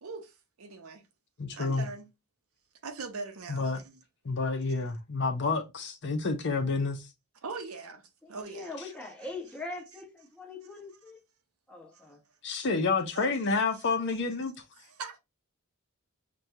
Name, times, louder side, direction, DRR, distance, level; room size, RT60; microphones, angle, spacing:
voice 1, 0.0-1.0 1.5-2.1 2.8-4.0 7.4-9.3 10.6-10.8 11.9-12.1 13.1-13.3 14.8-15.2, right 4 dB, 70° right, 0.7 m, -42 dB
voice 2, 1.4-1.9 3.5-3.8 4.2-7.0 12.4-14.5, left 4 dB, 55° left, 0.6 m, -29 dB
voice 3, 8.3-11.2 11.7-12.2, left 2 dB, 5° left, 0.9 m, -42 dB
5.9 x 2.2 x 2.6 m
head